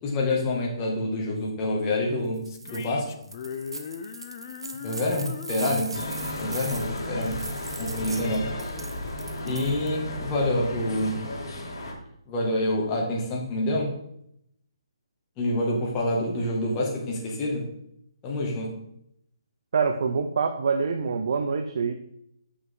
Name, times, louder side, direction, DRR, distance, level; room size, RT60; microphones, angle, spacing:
voice 1, 0.0-3.2 4.8-6.0 6.3-7.4 7.8-8.5 9.4-11.2 12.3-13.9 15.4-17.7 18.2-18.7, left 1 dB, 25° left, -2 dB, 2.0 m, -27 dB
sound 1, 2.3-2.9 3.2-9.9, right 3 dB, 90° right, 1.0 m, -39 dB
sound 2, 2.5-7.8, left 7 dB, 40° left, 0.6 m, -40 dB
sound 3, 5.9-11.9, left 1 dB, 60° left, 2.7 m, -34 dB
voice 2, 19.7-21.9, right 5 dB, 60° right, 6 dB, 0.7 m, -25 dB
8.1 x 6.0 x 3.9 m, 0.74 s
hypercardioid pair, 150°, 3 cm